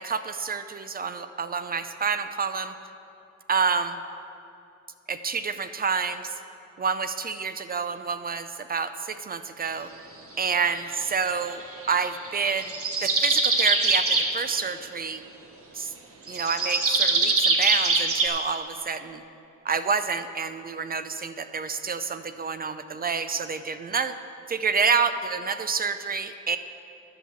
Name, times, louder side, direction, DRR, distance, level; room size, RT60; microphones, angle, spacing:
voice 1, 0.0-2.7 3.5-4.0 5.1-6.3 6.8-9.9 10.4-11.6 11.9-12.7 13.0-15.2 15.7-15.9 16.3-19.2 19.6-24.1 24.5-26.6, right 5 dB, 30° right, 10 dB, 0.5 m, -28 dB
sound 1, 11.8-14.3 16.3-18.3, right 3 dB, 50° right, 1.3 m, -23 dB
11.5 x 5.7 x 7.2 m, 2.7 s
cardioid pair, 90°, 30 cm